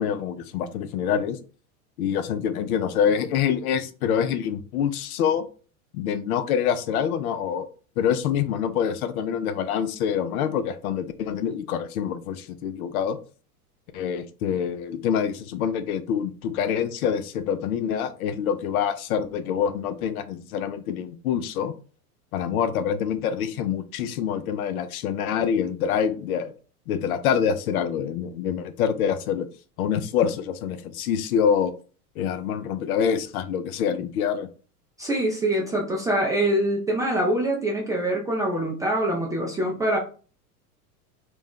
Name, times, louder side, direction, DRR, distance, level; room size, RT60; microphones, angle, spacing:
voice 1, 0.0-1.4 2.0-5.5 5.9-7.7 8.0-13.2 13.9-21.7 22.3-26.5 26.9-29.5 29.8-31.7 32.2-34.5, left 8 dB, 70° left, 11 dB, 0.6 m, -26 dB
voice 2, 35.0-40.0, right 1 dB, 10° right, -2 dB, 0.3 m, -24 dB
2.5 x 2.0 x 3.6 m, 0.39 s
hypercardioid pair, 95°, 46 cm